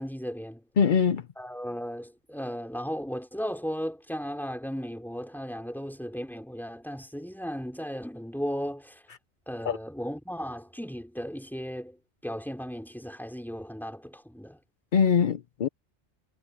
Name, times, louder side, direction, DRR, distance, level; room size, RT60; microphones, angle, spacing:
voice 1, 0.0-0.6 1.4-9.0 9.5-12.0 12.2-14.6, equal, ahead, 4.0 m, -36 dB
voice 2, 0.8-1.2 9.7-9.8 14.9-15.7, left 6 dB, 50° left, 0.7 m, -22 dB
omnidirectional pair, 1.3 m